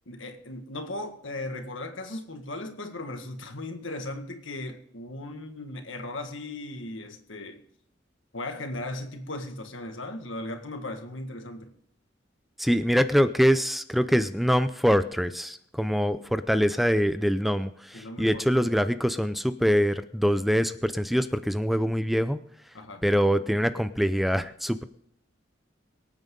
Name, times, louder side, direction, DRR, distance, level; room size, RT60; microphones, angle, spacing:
voice 1, 0.1-7.6 8.3-11.7 17.9-18.4 22.7-23.0, left 2 dB, 85° left, 1.7 m, -37 dB
voice 2, 12.6-22.4 23.0-24.8, equal, ahead, 0.5 m, -24 dB
23.5 x 9.1 x 3.8 m
head